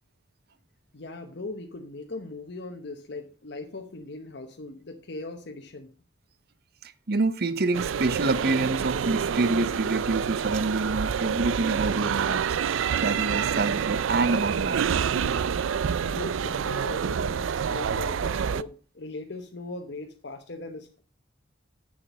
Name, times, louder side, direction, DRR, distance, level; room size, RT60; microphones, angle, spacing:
voice 1, 0.9-5.9 16.0-21.0, left 2 dB, 60° left, 0.9 m, -39 dB
voice 2, 6.8-12.6 13.0-14.9, right 3 dB, 55° right, 0.7 m, -27 dB
sound 1, 7.7-18.6, right 7 dB, 90° right, 0.4 m, -27 dB
7.8 x 7.0 x 5.4 m
head